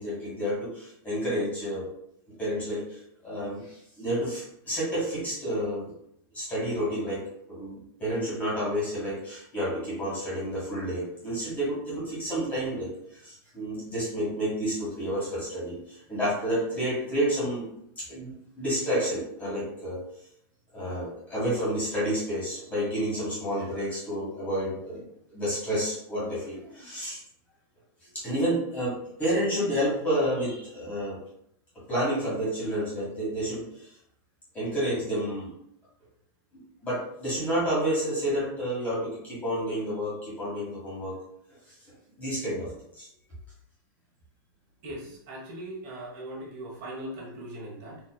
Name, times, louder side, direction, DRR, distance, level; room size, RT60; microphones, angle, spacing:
voice 1, 0.0-1.9 2.3-5.9 6.3-17.7 18.0-20.0 20.7-27.2 28.0-31.2 31.9-34.0 34.5-35.5 36.8-41.2 41.7-43.1, equal, 15° left, -8 dB, 1.5 m, -30 dB
voice 2, 44.8-48.0, right 1 dB, 40° right, -3 dB, 1.4 m, -39 dB
4.3 x 3.1 x 2.3 m, 0.74 s
supercardioid pair, 160°, 12 cm